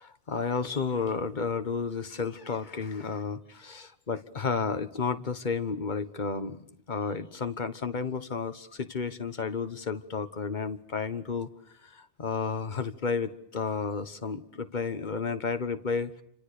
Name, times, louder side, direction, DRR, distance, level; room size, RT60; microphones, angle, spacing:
voice 1, 0.0-6.6 6.9-11.5 11.8-16.1, left 5 dB, 45° left, 10 dB, 1.5 m, -32 dB
29.5 x 26.0 x 6.7 m, 0.72 s
omnidirectional pair, 1.1 m